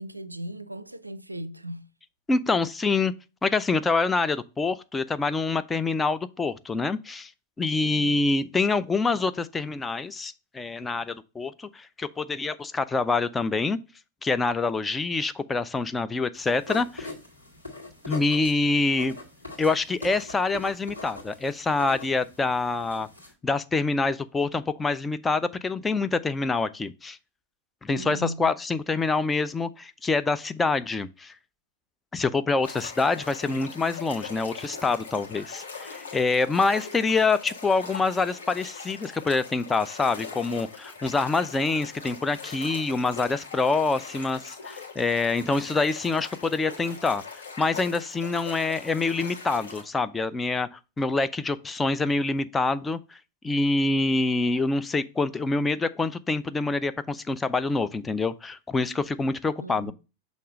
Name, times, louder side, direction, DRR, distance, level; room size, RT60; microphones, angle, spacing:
voice 1, 0.0-1.9 7.8-8.3 27.9-28.5 33.5-33.7 59.6-59.9, right 1 dB, 85° right, 0.4 m, -37 dB
voice 2, 2.3-3.1 3.4-7.3 7.6-13.8 14.2-17.1 18.1-19.2 19.6-23.1 23.4-27.2 27.8-31.3 32.1-53.2 53.4-59.9, left 3 dB, 15° left, 0.4 m, -26 dB
sound 1, 16.3-23.3, left 2 dB, 85° left, 2.0 m, -42 dB
sound 2, 32.6-49.8, left 4 dB, 65° left, 1.5 m, -41 dB
6.6 x 3.1 x 5.1 m
figure-of-eight pair, 90°, 0 cm